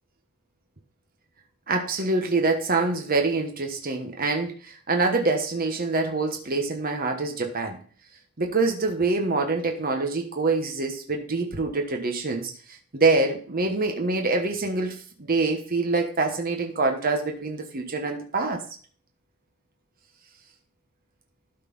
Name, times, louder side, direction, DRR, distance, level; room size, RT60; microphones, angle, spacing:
voice 1, 1.7-7.8 8.4-12.5 12.9-18.6, right 3 dB, 45° right, 4 dB, 1.2 m, -25 dB
12.5 x 4.2 x 5.4 m, 0.43 s
head